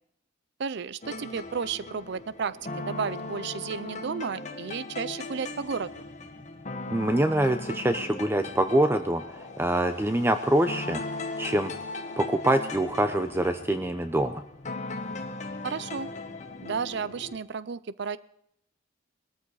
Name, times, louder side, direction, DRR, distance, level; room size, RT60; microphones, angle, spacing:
voice 1, 0.6-5.9 15.6-16.1 16.6-18.2, right 6 dB, 60° right, 17 dB, 0.5 m, -33 dB
sound 1, 1.0-17.4, left 2 dB, 40° left, 1.5 m, -38 dB
voice 2, 6.9-11.0 11.4-11.7 12.2-14.4, right 1 dB, 10° right, 8 dB, 0.6 m, -25 dB
20.0 x 13.5 x 4.8 m, 0.76 s
head